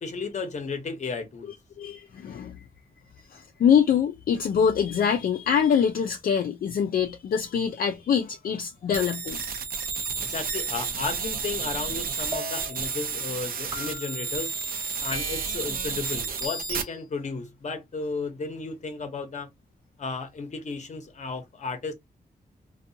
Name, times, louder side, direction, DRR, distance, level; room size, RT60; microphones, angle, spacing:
voice 1, 0.0-1.5 10.2-14.5 15.0-19.5 20.0-21.9, left 4 dB, 50° left, 0.8 m, -34 dB
voice 2, 1.8-2.6 3.3-9.4, left 7 dB, 70° left, 0.4 m, -24 dB
sound 1, 8.9-16.8, right 5 dB, 75° right, 0.6 m, -31 dB
sound 2, 12.3-12.9 13.7-14.3 15.1-15.7 16.4-17.0, left 2 dB, 25° right, 0.7 m, -38 dB
2.6 x 2.3 x 2.6 m
wide cardioid pair, 125°, 15 cm